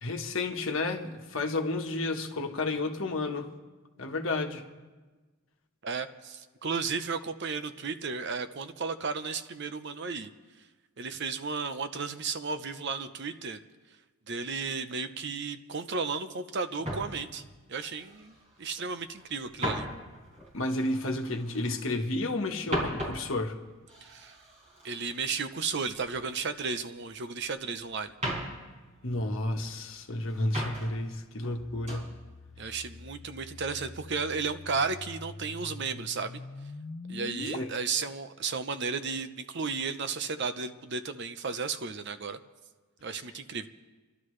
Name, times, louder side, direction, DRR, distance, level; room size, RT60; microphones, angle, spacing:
voice 1, 0.0-3.5 4.0-4.6 20.5-23.6 29.0-32.1 37.5-37.7, left 2 dB, 65° left, 1.3 m, -31 dB
voice 2, 5.8-10.3 11.0-13.6 14.3-17.4 17.7-19.8 24.0-24.3 24.8-28.1 32.6-36.4 37.1-42.4 43.0-43.7, right 5 dB, 55° right, 0.8 m, -34 dB
sound 1, 16.8-18.9 19.1-22.0 22.3-26.5 26.8-27.7 28.1-29.9 30.3-31.1 31.4-32.1 32.6-32.9, equal, 35° right, 5.1 m, -38 dB
sound 2, 31.6-37.6, left 3 dB, 30° left, 0.4 m, -44 dB
29.0 x 12.0 x 3.2 m
head